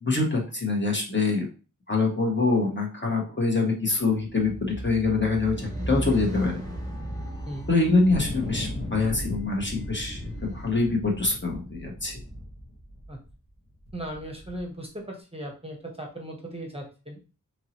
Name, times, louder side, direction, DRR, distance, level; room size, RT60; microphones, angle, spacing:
voice 1, 0.0-1.5 1.9-6.6 7.7-12.2, left 3 dB, 35° left, 0 dB, 1.0 m, -25 dB
sound 1, 4.2-10.6, right 1 dB, 10° left, 1.3 m, -36 dB
sound 2, 8.1-13.3 13.9-14.6, left 1 dB, 90° left, 1.3 m, -36 dB
voice 2, 13.9-17.2, right 1 dB, 20° right, 1 dB, 0.7 m, -37 dB
3.0 x 2.6 x 2.9 m, 0.34 s
wide cardioid pair, 65°, 32 cm